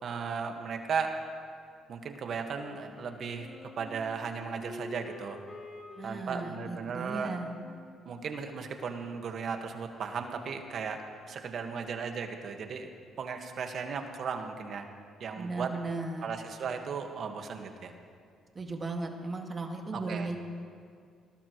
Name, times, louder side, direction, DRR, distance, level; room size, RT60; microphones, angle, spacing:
voice 1, 0.0-1.1 1.9-3.5 3.8-5.4 6.0-7.4 8.0-12.9 13.2-14.9 15.2-15.7 16.2-17.9 19.9-20.3, right 6 dB, 60° right, 5 dB, 1.7 m, -36 dB
Wind instrument woodwind instrument, 2.5-9.1, left 2 dB, 40° left, 4.2 m, -48 dB
voice 2, 6.0-7.6 15.4-16.3 18.5-20.4, right 3 dB, 35° right, 2 dB, 2.2 m, -36 dB
20.5 x 19.0 x 3.2 m, 2.3 s
supercardioid pair, 65°, 0 cm